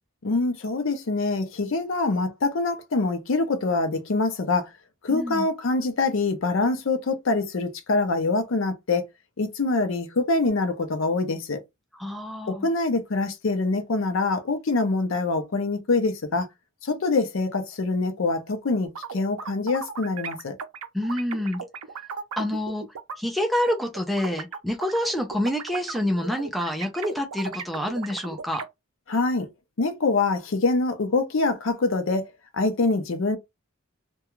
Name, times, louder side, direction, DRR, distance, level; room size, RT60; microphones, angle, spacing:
voice 1, 0.2-4.7 5.0-9.0 9.4-11.6 12.5-16.5 16.8-20.6 29.1-29.5 29.8-32.2 32.5-33.4, left 3 dB, 65° left, 0.5 m, -25 dB
voice 2, 5.1-5.5 12.0-12.7 20.9-21.6 22.4-22.9 23.2-28.6, left 1 dB, ahead, 0.4 m, -27 dB
sound 1, 18.9-23.2 23.6-28.7, right 5 dB, 90° right, 0.5 m, -37 dB
2.3 x 2.2 x 2.9 m
head